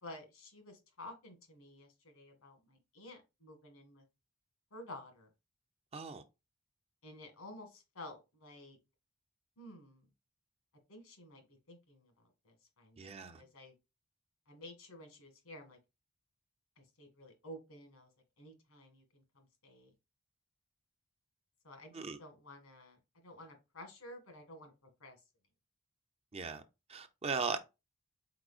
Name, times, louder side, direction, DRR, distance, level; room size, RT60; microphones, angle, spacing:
voice 1, 0.0-4.0 4.7-5.3 7.0-8.8 9.6-10.1 10.9-13.7 14.5-15.8 16.8-18.1 18.4-19.9 21.6-25.2, left 1 dB, 80° left, 1.6 m, -52 dB
voice 2, 5.9-6.2 13.0-13.4 21.9-22.2 26.3-26.6 26.9-27.6, right 5 dB, 30° right, 0.5 m, -38 dB
4.9 x 4.2 x 2.4 m
head